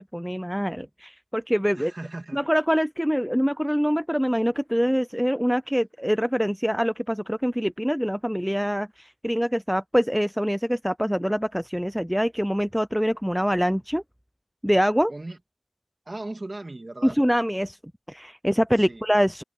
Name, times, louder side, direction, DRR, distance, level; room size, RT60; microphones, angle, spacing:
voice 1, 0.0-1.9 2.3-14.0 14.6-15.1 17.0-17.8 18.1-19.4, equal, ahead, 0.5 m, -24 dB
voice 2, 1.7-2.4 15.1-15.4 16.1-17.2 18.8-19.0, right 2 dB, 30° right, 2.4 m, -37 dB
wide cardioid pair, 75°, 0 cm